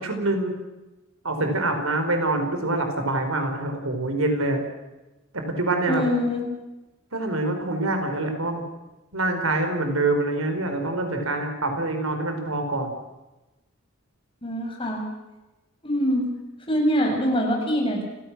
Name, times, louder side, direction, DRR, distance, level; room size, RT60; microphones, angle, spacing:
voice 1, 0.0-0.5 1.2-4.6 5.3-6.0 7.1-8.6 9.1-12.9, right 2 dB, 80° right, 5 dB, 5.1 m, -25 dB
voice 2, 5.9-6.4 14.4-15.0 15.8-16.3 16.7-18.0, equal, 25° left, 1 dB, 6.7 m, -24 dB
30.0 x 17.5 x 6.3 m, 1.0 s
head